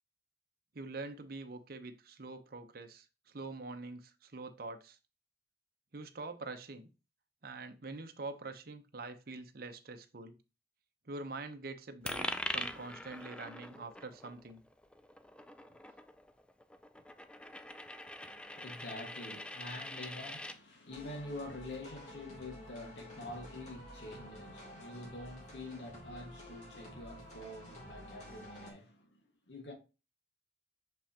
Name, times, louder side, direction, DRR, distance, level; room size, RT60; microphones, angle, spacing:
voice 1, 0.7-5.0 5.9-6.9 7.4-10.4 11.1-14.6, right 3 dB, 55° right, 0.8 m, -45 dB
Coin (dropping), 12.1-20.6, left 1 dB, 5° left, 0.4 m, -43 dB
voice 2, 18.2-29.2 29.5-29.7, left 1 dB, 75° left, 1.7 m, -46 dB
sound 1, 20.9-28.7, left 1 dB, 40° left, 2.7 m, -51 dB
6.1 x 5.4 x 2.9 m
head